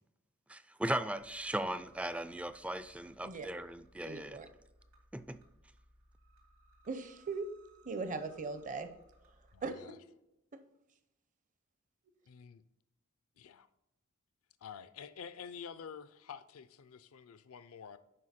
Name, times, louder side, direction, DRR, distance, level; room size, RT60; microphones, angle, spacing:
voice 1, 0.5-4.4 5.1-5.4, right 1 dB, 5° right, 0.3 m, -37 dB
sound 1, 1.2-9.7, right 2 dB, 80° right, 2.6 m, -65 dB
voice 2, 4.0-4.5 6.8-7.5 7.8-8.9 9.6-9.8, right 4 dB, 35° right, 0.6 m, -39 dB
voice 3, 9.5-10.0 12.3-12.6 13.4-13.7 14.6-18.0, left 7 dB, 70° left, 0.4 m, -49 dB
11.0 x 4.4 x 4.3 m
head